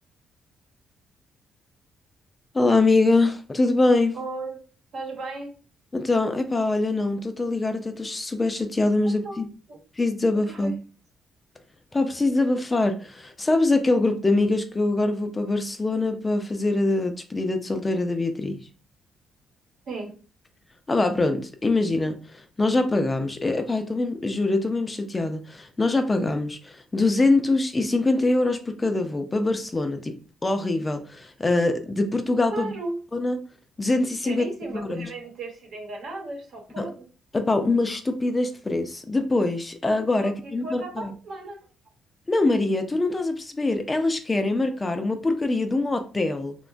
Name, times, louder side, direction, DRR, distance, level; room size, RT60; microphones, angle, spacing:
voice 1, 2.5-4.2 5.9-9.5 10.0-10.7 11.9-18.7 20.9-30.2 30.4-32.7 33.1-33.4 33.8-34.4 34.7-35.1 36.8-36.9 37.3-41.1 42.3-46.6, left 2 dB, 20° left, 0.4 m, -24 dB
voice 2, 4.1-4.6 4.9-5.5 9.0-9.8 10.5-10.8 19.9-20.2 32.5-33.0 34.2-37.1 40.2-41.7, right 2 dB, 70° right, 1.0 m, -35 dB
2.8 x 2.2 x 2.5 m
cardioid pair, 90°, 0 cm